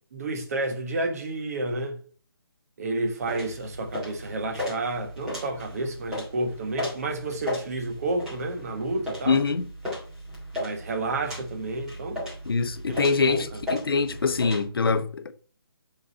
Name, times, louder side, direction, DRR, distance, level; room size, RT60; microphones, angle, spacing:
voice 1, 0.1-2.0 2.8-9.4 10.5-12.2 12.9-13.6, right 2 dB, 40° right, 1.3 m, -30 dB
sound 1, 3.2-14.6, left 1 dB, 5° right, 1.8 m, -36 dB
voice 2, 9.3-9.6 12.5-15.3, left 4 dB, 65° left, 0.8 m, -24 dB
7.0 x 3.9 x 5.2 m
hypercardioid pair, 170°, 13 cm